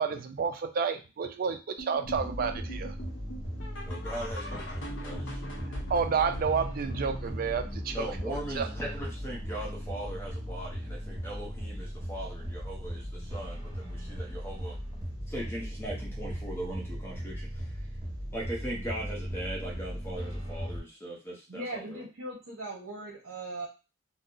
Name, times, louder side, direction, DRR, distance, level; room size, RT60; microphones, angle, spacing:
voice 1, 0.0-2.9 5.9-8.7, right 6 dB, 45° right, 8 dB, 0.3 m, -30 dB
sound 1, 1.8-10.9 11.2-11.5 11.8-11.9 12.4-12.5 13.0-13.1, equal, 60° left, 0.7 m, -44 dB
sound 2, 2.0-20.8, equal, 20° right, 0.7 m, -37 dB
voice 2, 3.8-5.4 7.9-14.7 15.3-17.7 18.3-22.1, right 1 dB, 10° left, -3 dB, 0.7 m, -39 dB
voice 3, 21.5-23.7, right 2 dB, 80° right, 0 dB, 0.7 m, -39 dB
2.7 x 2.0 x 3.7 m, 0.31 s
head